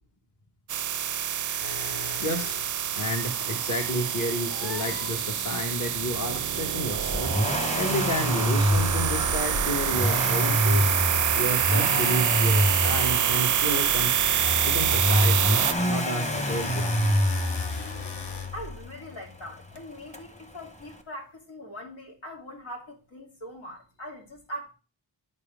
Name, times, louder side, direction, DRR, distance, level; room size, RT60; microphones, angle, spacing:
sound 1, 0.7-15.7, right 9 dB, 45° right, 0.4 m, -26 dB
sound 2, 1.6-3.3 4.5-5.2 7.2-7.3 8.6-10.1 15.7-19.8, left 4 dB, 60° left, 1.1 m, -38 dB
voice 1, 2.2-2.6 2.9-10.9 11.3-14.2 14.6-16.9, equal, 40° left, 1.4 m, -31 dB
Accelerating revving vroom, 6.9-18.8 20.1-20.2, equal, 15° left, 1.1 m, -27 dB
voice 2, 18.5-24.7, equal, 80° left, 3.0 m, -41 dB
9.9 x 4.2 x 5.1 m
wide cardioid pair, 75°, 46 cm